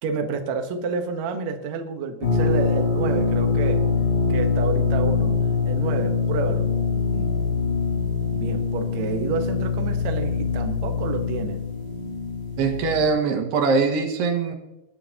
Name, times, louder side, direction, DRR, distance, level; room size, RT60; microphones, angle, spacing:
voice 1, 0.0-3.8 4.3-6.7 7.1-7.3 8.3-11.6, right 4 dB, 60° right, 5 dB, 1.9 m, -29 dB
sound 1, 2.2-13.1, left 5 dB, 90° left, 5.1 m, -23 dB
voice 2, 12.6-14.5, right 4 dB, 85° right, 3 dB, 3.7 m, -22 dB
19.5 x 12.0 x 2.9 m, 0.90 s
omnidirectional pair, 4.6 m